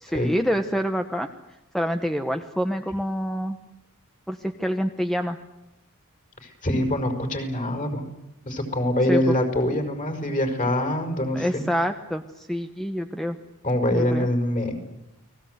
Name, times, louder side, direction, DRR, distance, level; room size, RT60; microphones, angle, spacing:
voice 1, 0.0-1.3 1.7-3.6 4.3-5.4 9.1-9.3 11.3-13.4 13.9-14.3, equal, ahead, 6 dB, 1.0 m, -27 dB
voice 2, 6.4-8.0 8.5-11.6 13.6-14.7, left 1 dB, 35° left, 5 dB, 5.4 m, -24 dB
30.0 x 20.5 x 8.0 m, 0.91 s
head